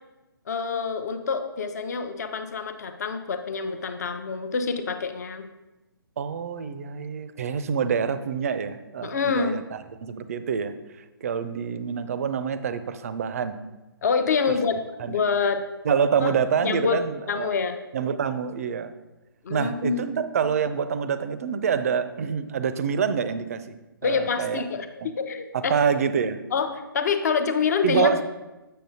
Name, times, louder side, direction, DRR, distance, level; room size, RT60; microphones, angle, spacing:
voice 1, 0.5-5.5 9.0-9.5 14.0-14.8 15.1-15.6 16.2-16.3 16.6-17.0 17.3-17.8 19.4-20.2 24.0-25.8 26.5-26.7 26.9-28.2, left 5 dB, 45° left, 8 dB, 0.6 m, -26 dB
voice 2, 6.2-13.6 15.0-15.2 15.8-17.5 17.9-18.9 19.5-24.6 25.0-25.1 25.5-26.4 27.8-28.2, right 7 dB, 40° right, 12 dB, 0.4 m, -26 dB
7.5 x 6.5 x 2.7 m, 1.1 s
figure-of-eight pair, 135°, 12 cm